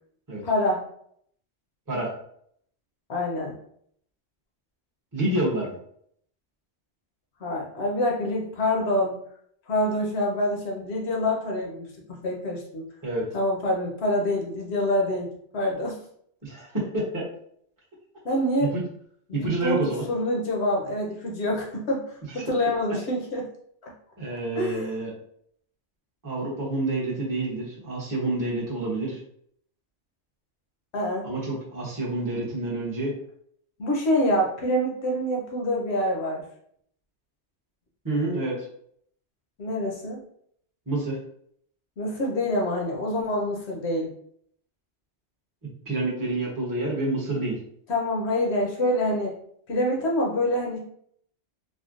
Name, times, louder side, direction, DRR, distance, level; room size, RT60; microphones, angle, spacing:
voice 1, 0.4-0.9 3.1-3.6 7.4-9.2 9.7-12.8 13.3-16.0 18.2-18.7 19.3-23.5 23.8-23.9 24.6-24.9 30.9-31.3 33.8-36.4 39.6-40.2 42.0-44.1 47.9-49.4 49.7-50.8, left 1 dB, 65° left, -1 dB, 1.0 m, -26 dB
voice 2, 5.1-5.8 13.0-13.3 16.4-17.2 19.3-20.1 22.3-22.5 24.2-25.1 26.2-29.2 31.2-33.1 38.0-38.5 40.9-41.2 45.9-47.6, right 2 dB, 20° right, -4 dB, 0.8 m, -28 dB
3.5 x 2.2 x 2.4 m, 0.65 s
omnidirectional pair, 1.2 m